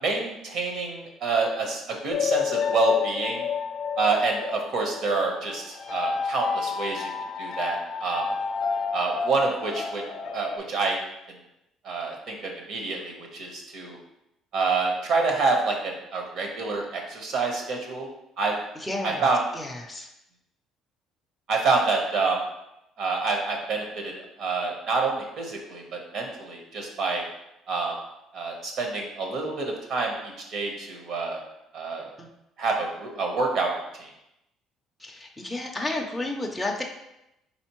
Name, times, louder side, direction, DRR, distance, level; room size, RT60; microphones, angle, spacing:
voice 1, 0.0-3.4 4.0-7.1 7.4-8.2 8.9-10.0 10.3-11.0 11.8-14.0 14.5-15.8 16.1-18.1 18.4-18.5 19.0-19.4 21.5-22.4 23.0-24.1 24.4-27.2 27.7-28.0 28.3-31.4 31.7-32.1 32.6-33.7 34.0-34.1, right 3 dB, 55° right, 1 dB, 1.0 m, -27 dB
sound 1, 2.1-10.6, left 6 dB, 55° left, 0.6 m, -30 dB
voice 2, 18.8-19.2 19.5-20.1 32.2-32.3 35.0-36.8, left 2 dB, 5° left, 0 dB, 0.4 m, -32 dB
4.2 x 3.9 x 3.0 m, 0.86 s
cardioid pair, 150°, 0 cm